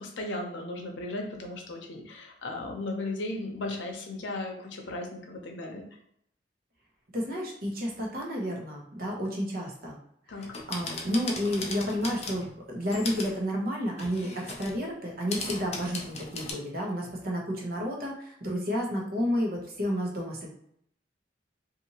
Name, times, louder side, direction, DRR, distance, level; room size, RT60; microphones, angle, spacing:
voice 1, 0.0-5.8 10.3-10.4, left 2 dB, 80° left, 2 dB, 0.6 m, -36 dB
voice 2, 7.1-10.0 10.3-10.4 10.7-20.5, equal, 55° right, -1 dB, 0.8 m, -31 dB
sound 1, 10.4-12.5 12.8-13.4 14.0-14.8 15.3-16.5, left 3 dB, 35° left, 0.5 m, -37 dB
2.7 x 2.5 x 2.8 m, 0.70 s
head